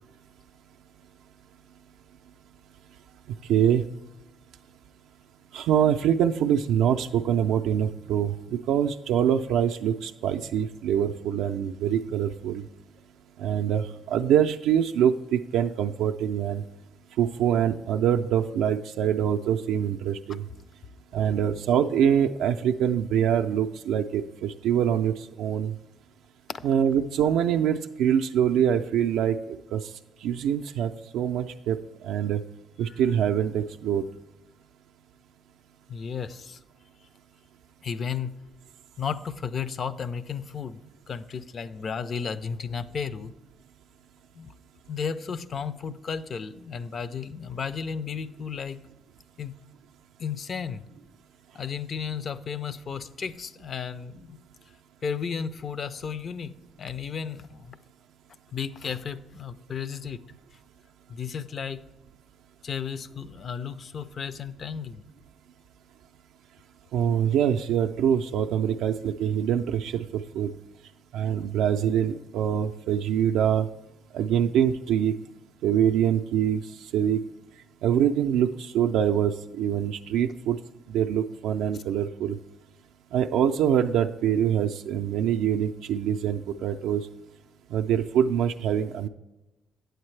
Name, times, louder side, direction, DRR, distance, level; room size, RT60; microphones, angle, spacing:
voice 1, 3.5-3.8 5.5-12.6 13.4-16.6 17.2-20.4 21.1-25.7 26.6-29.9 30.2-31.8 32.0-32.4 32.8-34.0 66.9-70.5 71.1-73.7 74.1-75.2 75.6-76.6 76.9-77.2 77.8-80.6 80.9-82.4 83.1-87.1 87.7-89.1, right 9 dB, 85° right, 4 dB, 0.3 m, -24 dB
voice 2, 35.9-36.6 37.8-38.3 39.0-43.3 44.4-44.5 44.9-48.8 49.4-49.5 50.2-50.8 51.5-54.4 55.0-56.5 56.8-57.8 58.5-60.2 61.1-61.9 62.6-65.0, left 6 dB, 50° left, 15 dB, 0.5 m, -33 dB
8.8 x 7.8 x 3.2 m, 1.0 s
cardioid pair, 100°, 0 cm